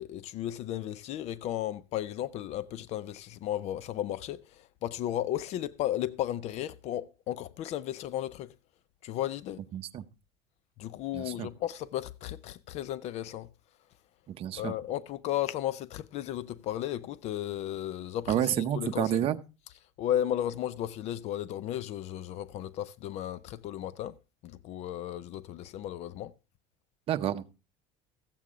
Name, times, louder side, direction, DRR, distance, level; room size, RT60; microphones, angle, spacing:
voice 1, 0.0-8.5 9.0-9.6 10.8-13.5 14.6-19.2 20.0-24.2 24.4-26.3, left 12 dB, 50° left, 0.5 m, -34 dB
voice 2, 9.7-10.0 11.1-11.5 14.3-14.8 18.3-19.4 27.1-27.4, right 10 dB, 40° right, 0.8 m, -29 dB
14.5 x 8.3 x 3.6 m
supercardioid pair, 130°, 15 cm